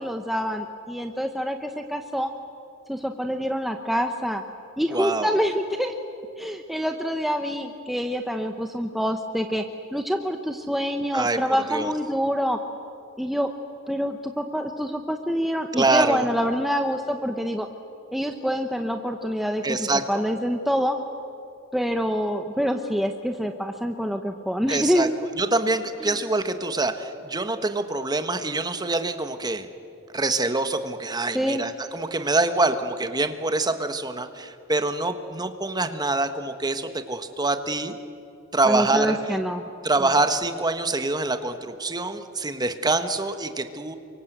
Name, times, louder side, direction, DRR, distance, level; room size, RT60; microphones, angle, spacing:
voice 1, 0.0-2.3 2.9-4.4 4.8-5.9 6.4-9.6 9.9-12.6 13.2-13.5 13.9-17.7 18.1-21.0 21.7-25.1 26.0-26.2 31.3-31.6 38.6-39.7, equal, ahead, 4 dB, 1.0 m, -26 dB
voice 2, 4.9-5.3 11.1-11.4 11.7-11.9 15.7-16.2 19.6-20.2 24.7-25.1 25.4-29.7 30.1-38.0 38.5-39.2 39.8-44.0, right 2 dB, 20° right, 8 dB, 1.4 m, -25 dB
28.5 x 24.5 x 8.1 m, 2.6 s
head